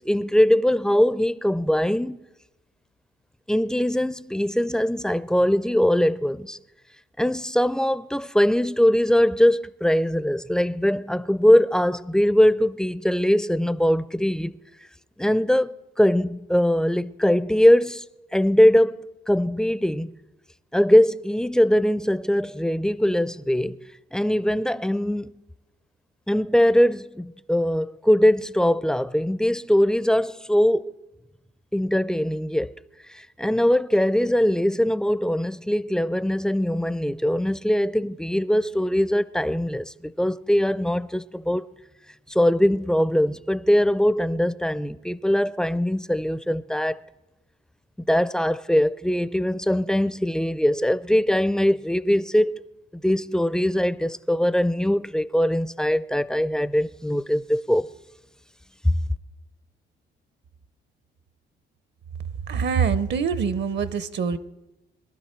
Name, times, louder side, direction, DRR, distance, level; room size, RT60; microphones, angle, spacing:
voice 1, 0.0-2.2 3.5-6.6 7.2-14.6 15.2-18.1 18.3-20.1 20.7-23.8 24.1-25.4 26.3-30.9 31.7-32.7 33.1-41.6 42.3-47.0 48.0-52.6 52.9-57.9 58.8-58.9, equal, 5° left, 0.4 m, -21 dB
voice 2, 62.5-64.4, right 6 dB, 60° right, 0.8 m, -24 dB
22.0 x 12.0 x 4.4 m
cardioid pair, 90°, 20 cm